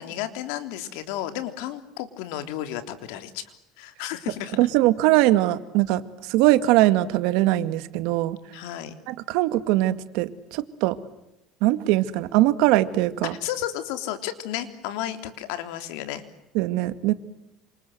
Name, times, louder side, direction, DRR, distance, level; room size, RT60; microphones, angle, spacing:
voice 1, 0.0-3.4 3.8-4.6 8.5-8.9 13.4-16.2, left 12 dB, 85° left, 9 dB, 3.4 m, -32 dB
voice 2, 4.6-8.4 9.1-11.0 11.6-13.3 16.5-17.1, right 16 dB, 75° right, 13 dB, 2.0 m, -21 dB
28.0 x 26.5 x 7.9 m, 0.91 s
cardioid pair, 145°, 0 cm